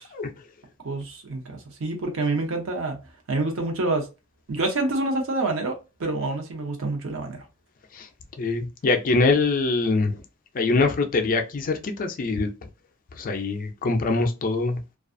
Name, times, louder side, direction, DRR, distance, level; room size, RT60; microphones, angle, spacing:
voice 1, 0.8-3.0 3.3-4.1 4.5-5.7 6.0-7.4, right 2 dB, 65° right, 0.7 m, -27 dB
voice 2, 8.4-10.2 10.5-12.5 13.2-14.8, left 3 dB, 40° left, 0.4 m, -23 dB
2.4 x 2.3 x 2.5 m
head